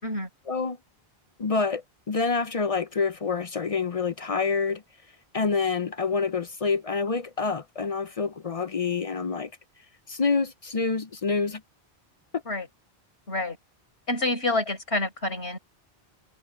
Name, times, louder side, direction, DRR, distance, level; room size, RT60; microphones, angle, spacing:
voice 1, 1.4-4.8 5.3-9.5 10.1-11.6, left 4 dB, 40° left, 0.6 m, -27 dB
voice 2, 14.1-15.6, left 2 dB, 90° left, 5.0 m, -28 dB
omnidirectional pair, 1.1 m